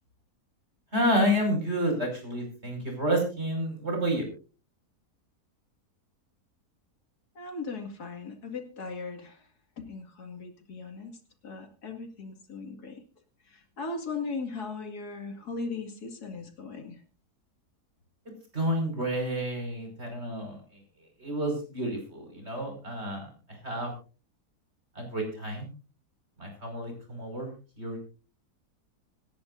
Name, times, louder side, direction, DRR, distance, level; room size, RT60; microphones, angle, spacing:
voice 1, 0.9-4.3 18.5-20.6 21.2-23.9 25.0-25.7 26.4-28.1, equal, 45° right, 2 dB, 5.8 m, -30 dB
voice 2, 7.4-9.4 9.8-11.2 11.4-13.0 13.5-17.0, left 4 dB, 85° left, 4 dB, 2.8 m, -38 dB
26.0 x 10.5 x 2.6 m, 0.34 s
omnidirectional pair, 1.6 m